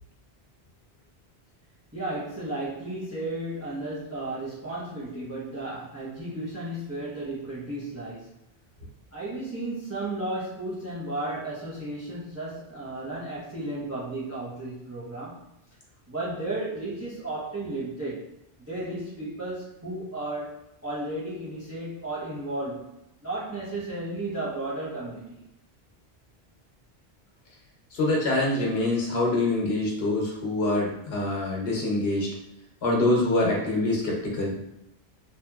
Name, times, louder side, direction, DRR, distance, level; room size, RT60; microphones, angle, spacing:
voice 1, 1.9-8.3 9.1-15.4 16.1-18.2 18.6-20.6 20.8-22.9 23.2-25.4, right 2 dB, 20° right, -8 dB, 0.6 m, -34 dB
voice 2, 27.9-32.3 32.8-34.6, left 2 dB, 75° left, -2 dB, 1.0 m, -25 dB
2.8 x 2.7 x 2.2 m, 0.85 s
omnidirectional pair, 1.1 m